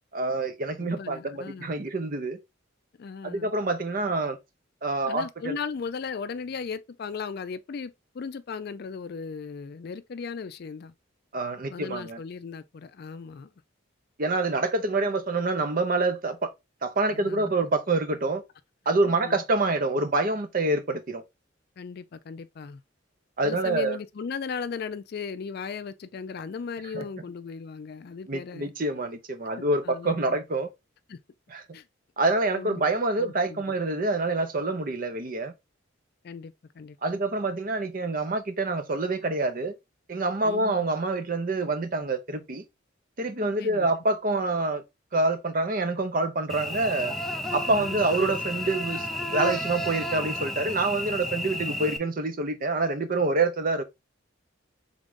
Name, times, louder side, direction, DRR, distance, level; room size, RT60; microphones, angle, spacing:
voice 1, 0.1-2.4 3.2-4.4 4.8-5.6 11.3-12.2 14.2-16.5 16.8-18.4 18.9-21.2 23.4-24.0 26.9-27.0 28.3-30.7 31.5-31.6 32.2-35.5 37.0-39.7 40.1-42.6 43.2-44.8 45.1-47.1 47.5-49.1 49.3-53.8, right 2 dB, 45° right, 0.7 m, -26 dB
voice 2, 0.8-1.7 3.0-3.5 5.0-10.9 11.7-13.5 17.1-17.5 19.0-19.4 21.8-22.8 23.4-28.7 29.8-30.4 31.1-31.2 31.7-31.9 32.5-32.8 33.2-33.7 36.2-37.2 40.4-40.9 43.6-43.9 47.7-48.2, left 5 dB, 50° left, 0.4 m, -37 dB
Cricket / Buzz, 46.5-52.0, left 1 dB, ahead, 0.5 m, -32 dB
3.8 x 3.6 x 3.6 m
head